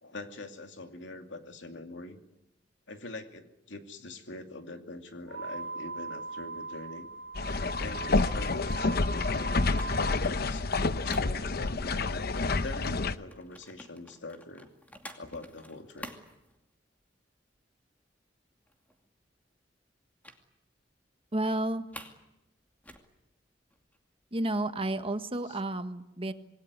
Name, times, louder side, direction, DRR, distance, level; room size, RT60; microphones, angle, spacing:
voice 1, 0.0-2.2 2.9-7.1 7.8-9.5 9.9-10.7 11.0-14.7 15.2-16.1 25.5-25.6, left 2 dB, 90° left, 5 dB, 2.6 m, -44 dB
sound 1, 5.3-10.2, right 3 dB, 85° right, 1.5 m, -40 dB
sound 2, 6.4-12.0 12.3-17.2 17.5-17.8 18.1-18.2 18.5-19.2 20.2-20.4 20.8-20.9 21.3-22.3 22.5-24.3, left 1 dB, 10° left, 2.4 m, -51 dB
sound 3, 7.3-13.1, left 3 dB, 55° left, 0.9 m, -28 dB
voice 2, 21.3-21.9 24.3-26.3, right 1 dB, 30° right, 9 dB, 1.4 m, -31 dB
26.5 x 20.0 x 9.6 m, 0.93 s
head